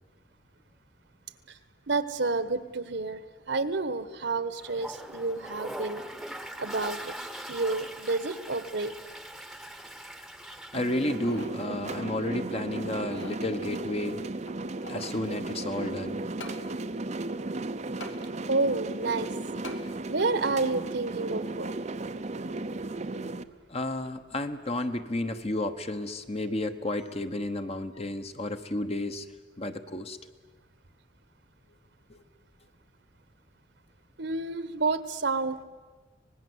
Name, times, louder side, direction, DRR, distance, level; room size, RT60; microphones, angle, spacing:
voice 1, 1.9-3.2 3.5-6.1 6.6-7.1 7.5-8.9 18.5-19.3 20.0-21.8 34.2-35.6, right 3 dB, 65° right, 13 dB, 1.4 m, -29 dB
Toilet flush, 4.6-11.4, right 1 dB, ahead, 1.1 m, -41 dB
voice 2, 10.7-14.2 14.9-16.2 23.7-29.3 29.6-30.2 32.1-32.2, left 1 dB, 35° left, 8 dB, 1.2 m, -32 dB
sound 1, 10.7-23.4, right 2 dB, 35° right, 0.8 m, -35 dB
sound 2, 10.9-11.6 12.0-12.1 12.8-13.4 14.4-15.2 16.4-16.6 18.0-18.2 19.6-19.8 20.4-20.5, left 2 dB, 75° left, 2.6 m, -44 dB
25.0 x 19.5 x 8.1 m, 1.4 s
head